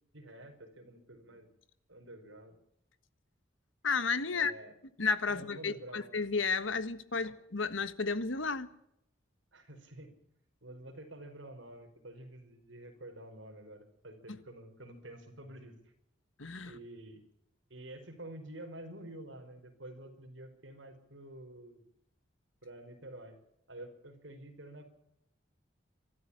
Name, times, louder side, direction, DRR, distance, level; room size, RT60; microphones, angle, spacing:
voice 1, 0.1-1.5 1.9-2.6 4.3-4.7 5.3-6.1 7.2-7.3 9.5-10.1 10.6-15.8 16.6-17.2 17.7-21.8 22.6-23.4 23.7-24.9, right 1 dB, 80° right, 4.9 m, -49 dB
voice 2, 3.8-4.5 5.0-8.7 14.3-14.4 16.4-16.7, left 4 dB, 85° left, 1.5 m, -32 dB
24.5 x 13.0 x 8.6 m
head